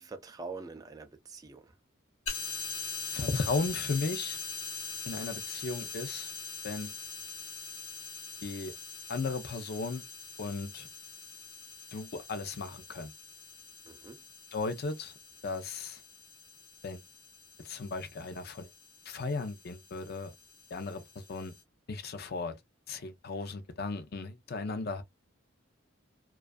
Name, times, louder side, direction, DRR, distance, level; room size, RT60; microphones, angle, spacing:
voice 1, 0.0-1.7 13.8-14.2, right 4 dB, 20° right, 0.3 m, -45 dB
sound 1, 2.3-21.6, left 5 dB, 70° left, 1.0 m, -43 dB
voice 2, 3.1-4.4 5.1-6.3 6.6-6.9 8.4-8.7 9.1-10.0 10.4-10.9 11.9-13.1 14.5-15.1 15.4-16.0 16.8-17.0 17.6-18.7 19.1-20.3 20.7-21.5 21.9-22.6 22.9-25.0, left 3 dB, 50° left, 0.5 m, -35 dB
2.4 x 2.3 x 2.2 m
head